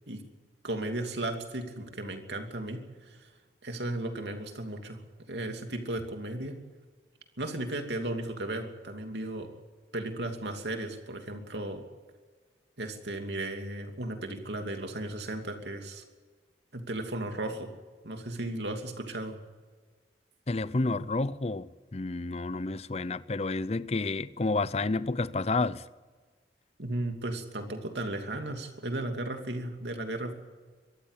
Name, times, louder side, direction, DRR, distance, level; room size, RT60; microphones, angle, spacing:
voice 1, 0.6-3.3 3.6-5.0 5.3-6.6 7.4-9.5 9.9-11.8 12.8-16.0 16.7-17.7 18.0-19.4 26.8-30.3, right 1 dB, 75° right, 2.8 m, -35 dB
voice 2, 20.5-25.8, left 3 dB, 35° left, 0.6 m, -30 dB
23.0 x 14.0 x 8.3 m
head